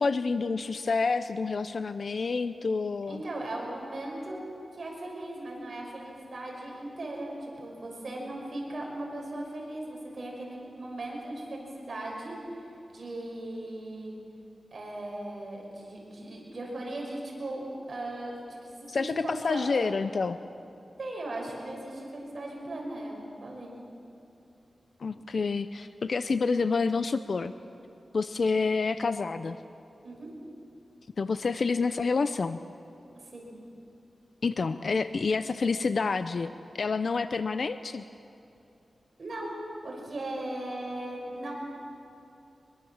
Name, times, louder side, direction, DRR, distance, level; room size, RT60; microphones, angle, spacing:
voice 1, 0.0-3.2 18.9-20.4 25.0-27.5 28.1-29.6 31.2-32.6 34.4-38.0, left 4 dB, 60° left, 11 dB, 0.5 m, -28 dB
voice 2, 3.1-4.4 4.7-12.4 12.9-14.1 14.7-17.6 17.9-20.0 21.0-23.2 23.4-23.7 30.0-30.3 33.2-33.5 39.2-41.5, right 1 dB, 50° right, -1 dB, 5.8 m, -38 dB
24.5 x 22.0 x 7.2 m, 2.8 s
wide cardioid pair, 120°, 0 cm